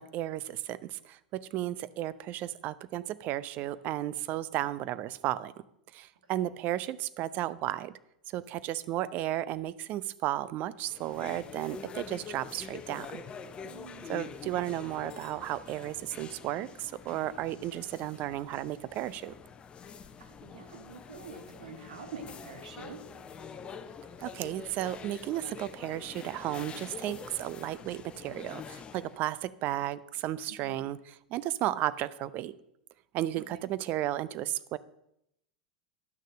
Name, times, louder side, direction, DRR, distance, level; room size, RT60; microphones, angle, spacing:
voice 1, 0.0-5.5 5.9-7.9 8.3-13.2 14.1-19.3 24.2-32.6 33.1-34.8, right 14 dB, 40° right, 17 dB, 0.6 m, -34 dB
sound 1, 10.8-29.2, left 6 dB, 25° left, 0.9 m, -46 dB
voice 2, 13.6-14.4 20.2-23.0 30.5-30.8 33.4-33.5, right 5 dB, 70° right, 5 dB, 1.9 m, -46 dB
11.5 x 6.5 x 6.3 m, 0.78 s
figure-of-eight pair, 90°, 4 cm